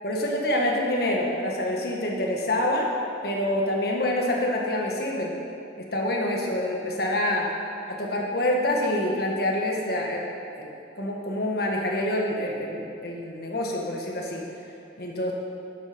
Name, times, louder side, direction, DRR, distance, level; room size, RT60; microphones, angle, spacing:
voice 1, 0.0-2.9 3.2-5.3 5.8-7.5 7.9-10.2 10.6-14.5 15.0-15.3, left 1 dB, 55° left, -1 dB, 1.7 m, -26 dB
11.5 x 9.3 x 5.3 m, 2.7 s
head